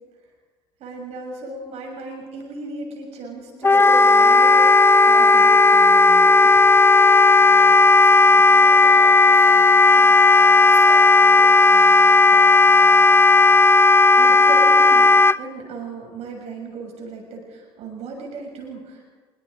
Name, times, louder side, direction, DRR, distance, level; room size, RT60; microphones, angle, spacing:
voice 1, 0.8-4.7 5.0-6.6 14.2-19.1, right 2 dB, 60° right, 1 dB, 6.5 m, -36 dB
Wind instrument woodwind instrument, 3.6-15.4, left 3 dB, 20° left, 0.5 m, -13 dB
voice 2, 7.3-13.7, right 3 dB, 85° right, -1 dB, 6.9 m, -43 dB
24.5 x 23.0 x 5.1 m, 1.4 s
hypercardioid pair, 60°, 12 cm